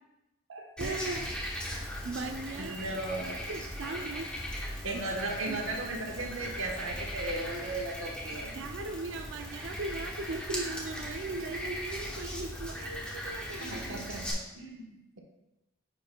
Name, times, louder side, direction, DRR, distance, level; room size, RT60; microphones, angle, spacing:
voice 1, 0.5-1.2 2.6-3.4 4.8-8.5 13.6-15.2, right 2 dB, 85° right, 1 dB, 1.2 m, -36 dB
Frog, 0.8-14.3, equal, 5° left, 1.0 m, -39 dB
voice 2, 2.0-3.0 3.5-4.3 4.9-5.0 5.5-5.6 8.5-13.7, right 3 dB, 70° right, 4 dB, 0.4 m, -38 dB
10.0 x 4.7 x 2.3 m, 0.95 s
head